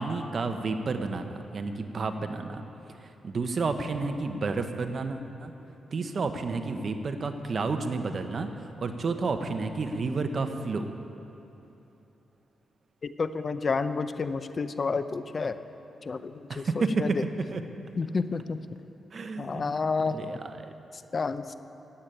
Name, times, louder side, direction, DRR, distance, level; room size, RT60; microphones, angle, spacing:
voice 1, 0.0-2.6 3.0-5.5 5.9-8.5 8.8-10.9 16.5-17.2 17.5-17.6 19.1-19.8 20.1-20.7, right 4 dB, 50° right, 7 dB, 1.0 m, -31 dB
voice 2, 13.0-15.6 16.1-16.6 17.0-17.1 18.0-18.6 19.4-20.2 21.1-21.5, left 4 dB, 45° left, 11 dB, 0.6 m, -30 dB
14.5 x 8.5 x 9.0 m, 3.0 s
cardioid pair, 85°, 0 cm